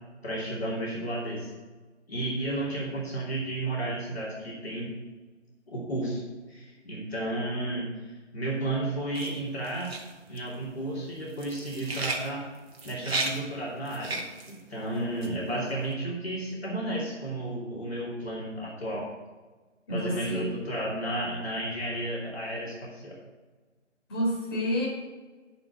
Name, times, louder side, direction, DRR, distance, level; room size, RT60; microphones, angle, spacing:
voice 1, 0.2-1.5 2.1-4.9 5.7-6.2 6.5-7.9 8.3-10.0 10.3-12.4 12.8-14.2 14.5-19.1 19.9-23.2, right 1 dB, 55° left, -5 dB, 3.0 m, -32 dB
sound 1, 9.1-15.7, right 2 dB, 55° right, 1.6 m, -35 dB
voice 2, 19.9-20.6 24.1-24.9, equal, 20° left, -7 dB, 3.9 m, -29 dB
9.3 x 5.5 x 8.0 m, 1.3 s
figure-of-eight pair, 150°, 36 cm